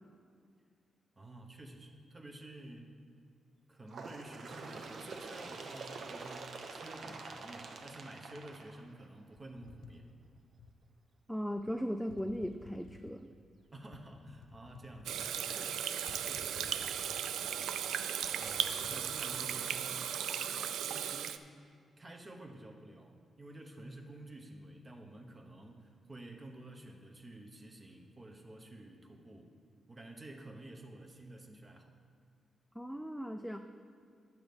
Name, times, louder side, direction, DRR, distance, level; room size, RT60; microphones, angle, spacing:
voice 1, 1.2-3.0 3.7-10.1 13.7-16.9 17.4-17.7 18.4-20.1 20.7-21.5 22.0-29.5 29.9-31.9, right 1 dB, 30° right, 2 dB, 1.0 m, -51 dB
Bird, 3.9-9.3 10.2-10.3 10.7-10.8 11.7-11.8 12.7-12.8 13.7-13.8, right 4 dB, 65° right, 0.8 m, -46 dB
sound 1, 9.4-10.8 11.6-11.7 12.1-13.2 13.9-15.6 16.1-17.5 17.8-17.9 18.2-19.4, left 4 dB, 85° left, 0.5 m, -55 dB
voice 2, 11.3-13.3 32.8-33.6, equal, ahead, 5 dB, 0.4 m, -37 dB
Water tap faucet / Sink (filling or washing), 15.1-21.4, right 9 dB, 90° right, 0.3 m, -36 dB
9.3 x 6.1 x 5.2 m, 2.2 s
cardioid pair, 90°, 0 cm